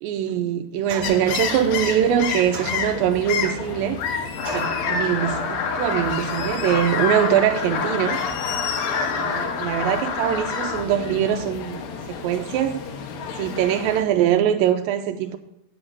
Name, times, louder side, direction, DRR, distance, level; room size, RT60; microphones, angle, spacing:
voice 1, 0.0-4.0 4.5-8.2 9.1-12.8 13.4-15.4, right 10 dB, 85° right, 2.0 m, -23 dB
sound 1, 0.9-1.4 2.5-3.2 4.4-4.9, right 4 dB, 60° right, 1.5 m, -35 dB
sound 2, 1.0-14.0, left 6 dB, 85° left, 3.2 m, -30 dB
sound 3, 4.4-10.8, left 5 dB, 70° left, 2.1 m, -28 dB
8.6 x 7.8 x 7.0 m
omnidirectional pair, 4.7 m